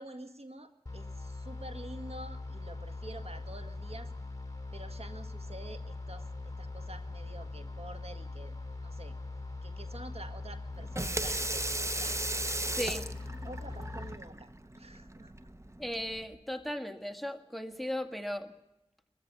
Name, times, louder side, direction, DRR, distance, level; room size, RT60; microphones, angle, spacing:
voice 1, 0.0-4.1 4.7-8.5 8.8-9.2 9.6-12.2 13.4-15.5, right 1 dB, 70° right, 7 dB, 1.7 m, -48 dB
sound 1, 0.9-14.2, left 3 dB, 30° left, 3.2 m, -41 dB
Water tap faucet / Sink (filling or washing), 10.7-16.2, right 1 dB, 25° right, 0.9 m, -36 dB
voice 2, 12.8-13.1 15.8-18.5, left 1 dB, ahead, 7 dB, 1.7 m, -36 dB
23.0 x 14.5 x 9.5 m, 0.89 s
wide cardioid pair, 50°, 11 cm